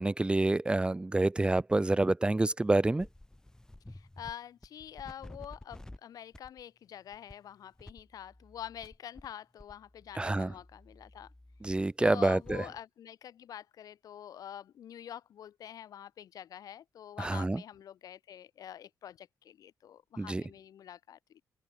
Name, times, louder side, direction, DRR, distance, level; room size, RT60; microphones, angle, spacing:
voice 1, 0.0-3.1 10.1-10.5 11.6-12.6 17.2-17.6 20.2-20.4, right 2 dB, 15° right, 1.6 m, -27 dB
sound 1, 3.0-4.3 4.6-6.0 6.3-6.6 7.1-7.3 7.8-9.3 9.6-12.6, left 1 dB, 10° left, 3.9 m, -51 dB
voice 2, 3.9-11.3 11.6-21.4, left 10 dB, 70° left, 2.2 m, -46 dB
cardioid pair, 95°, 7 cm